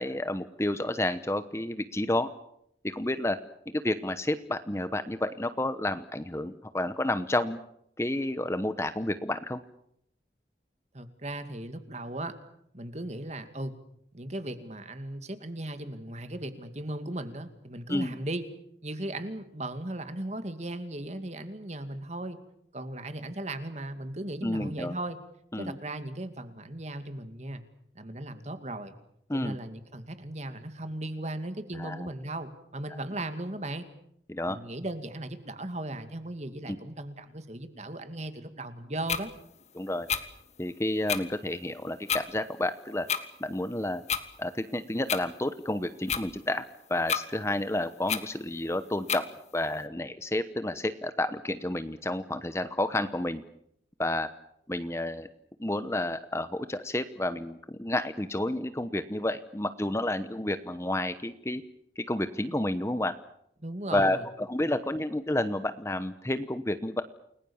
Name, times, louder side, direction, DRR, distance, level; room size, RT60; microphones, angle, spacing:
voice 1, 0.0-2.3 2.8-3.4 3.7-7.6 8.0-9.6 17.9-18.1 24.4-24.9 25.5-25.7 29.3-29.6 31.7-32.1 34.3-34.6 36.7-36.8 39.7-40.1 40.6-43.1 43.4-44.0 44.4-49.3 49.5-53.4 54.0-54.3 54.7-55.3 55.6-61.6 62.0-63.1 63.9-67.0, left 1 dB, 15° left, 11 dB, 0.9 m, -30 dB
voice 2, 10.9-12.4 12.7-13.7 14.1-18.4 18.8-22.4 22.7-25.2 25.6-27.6 27.9-28.9 29.3-33.9 34.5-39.3 63.6-64.2, right 1 dB, 35° right, 9 dB, 2.4 m, -37 dB
sound 1, 39.1-39.2 40.1-40.2 41.1-41.2 42.1-42.2 43.1-43.2 44.1-44.2 45.1-45.2 46.1-46.2 47.1-47.2 48.1-48.2 49.1-49.2, left 7 dB, 40° left, 1.7 m, -28 dB
29.5 x 20.5 x 7.2 m, 0.72 s
head